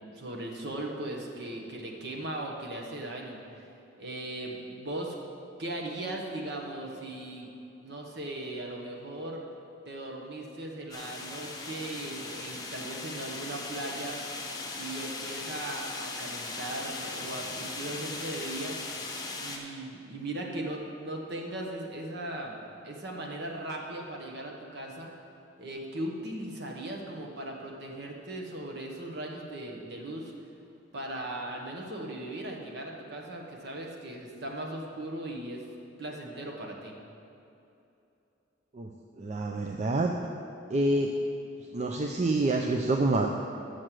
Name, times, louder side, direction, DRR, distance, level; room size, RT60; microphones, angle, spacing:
voice 1, 0.0-3.4 4.0-5.1 5.6-7.5 7.8-9.4 9.8-14.2 14.7-18.8 19.4-25.1 25.6-30.3 30.9-35.6 36.0-36.9, right 1 dB, 55° right, 0 dB, 1.2 m, -38 dB
sound 1, 10.9-19.6, left 3 dB, 20° left, 0.9 m, -38 dB
voice 2, 39.2-40.1 40.7-41.1 41.7-43.3, right 2 dB, 35° right, 1 dB, 0.4 m, -27 dB
6.5 x 6.4 x 7.5 m, 2.8 s
head